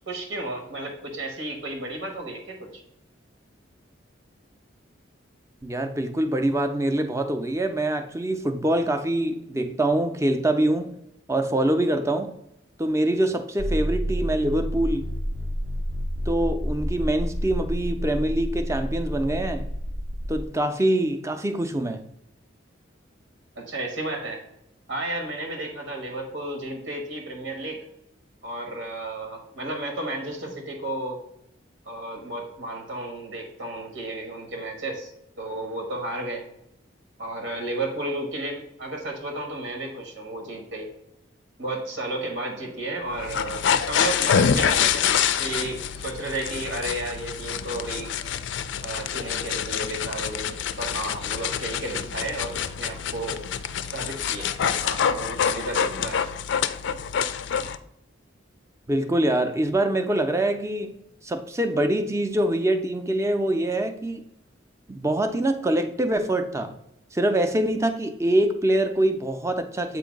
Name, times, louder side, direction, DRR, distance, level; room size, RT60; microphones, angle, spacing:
voice 1, 0.0-2.8 23.6-24.4 24.9-27.8 28.4-31.2 31.8-35.1 35.4-36.4 37.2-40.9 41.6-48.1 48.8-53.4 53.9-56.2, right 1 dB, 85° right, 1.3 m, -33 dB
voice 2, 5.6-11.0 11.3-12.3 12.8-15.1 16.3-19.7 20.3-22.0 58.9-60.9 61.2-64.3 64.9-66.8 67.1-70.0, right 1 dB, 15° right, 0.4 m, -24 dB
sound 1, 13.6-20.4, equal, 65° right, 0.6 m, -29 dB
sound 2, 43.1-57.8, left 8 dB, 65° left, 0.3 m, -26 dB
7.8 x 2.7 x 5.1 m
head